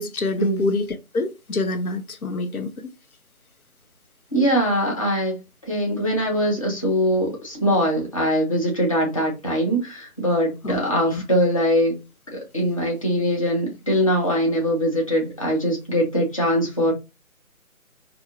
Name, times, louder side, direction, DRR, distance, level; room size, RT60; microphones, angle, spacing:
voice 1, 0.0-2.7 10.6-10.8 11.1-11.2, left 2 dB, 85° left, 0.8 m, -26 dB
voice 2, 4.3-5.4 5.7-12.0 12.3-16.9, equal, 25° left, 0.7 m, -22 dB
4.2 x 2.7 x 2.3 m
figure-of-eight pair, 160°, 42 cm